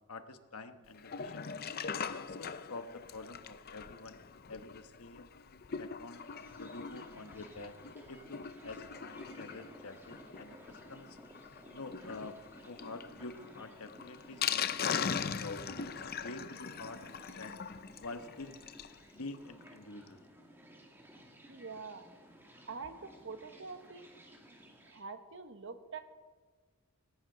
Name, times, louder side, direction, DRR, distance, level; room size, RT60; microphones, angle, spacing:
voice 1, 0.1-1.4 1.9-4.2 4.5-5.3 5.8-6.2 6.5-7.8 8.1-11.2 11.7-12.4 12.6-17.0 17.4-17.6 18.0-18.6 19.1-20.2, left 3 dB, 75° left, 8 dB, 1.2 m, -47 dB
Sink (filling or washing), 0.9-19.0 19.3-19.4 19.6-19.7 20.1-20.2, left 7 dB, 45° left, 0.6 m, -41 dB
sound 1, 6.1-25.0, right 1 dB, 10° right, 2.1 m, -56 dB
voice 2, 21.5-22.0 22.7-24.1 24.9-26.0, right 4 dB, 60° right, 8 dB, 1.3 m, -45 dB
18.5 x 18.0 x 4.0 m, 1.4 s
head